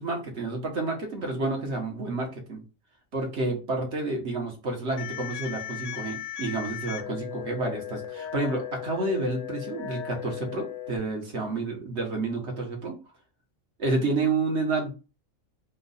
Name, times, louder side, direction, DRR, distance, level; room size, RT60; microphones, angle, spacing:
voice 1, 0.0-2.6 3.1-13.0 13.8-14.9, right 3 dB, 55° right, 2 dB, 1.5 m, -29 dB
sound 1, 5.0-11.0, left 11 dB, 70° left, 0.8 m, -37 dB
4.6 x 2.5 x 4.0 m, 0.31 s
omnidirectional pair, 1.4 m